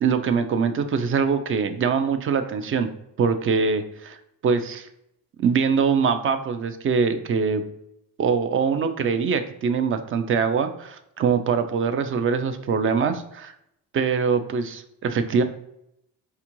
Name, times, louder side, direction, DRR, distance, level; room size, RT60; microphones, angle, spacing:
voice 1, 0.0-2.9 3.2-4.2 4.4-4.9 5.4-7.6 8.2-13.5 13.9-15.4, right 5 dB, 35° right, 9 dB, 0.4 m, -23 dB
4.4 x 2.4 x 2.9 m, 0.79 s
cardioid pair, 95°, 38 cm